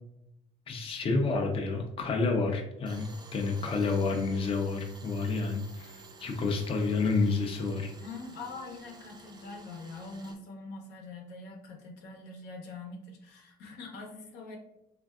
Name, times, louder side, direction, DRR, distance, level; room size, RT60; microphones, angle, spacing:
voice 1, 0.7-7.9, left 3 dB, 35° left, 2 dB, 0.5 m, -29 dB
Tools, 2.9-10.4, right 3 dB, 25° right, 0.5 m, -51 dB
voice 2, 8.0-14.6, left 3 dB, 80° left, 1 dB, 0.8 m, -44 dB
3.3 x 2.4 x 2.3 m, 0.84 s
cardioid pair, 110°, 17 cm